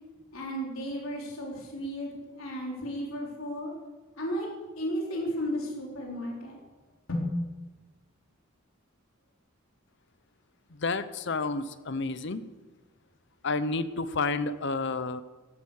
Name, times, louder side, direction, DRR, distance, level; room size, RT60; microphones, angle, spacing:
voice 1, 0.3-3.7 4.2-4.5 4.8-6.6 7.1-7.3, equal, 85° left, -2 dB, 4.0 m, -34 dB
voice 2, 10.8-12.5 13.4-15.2, left 3 dB, 60° left, 13 dB, 0.8 m, -30 dB
14.5 x 12.5 x 6.5 m, 1.2 s
head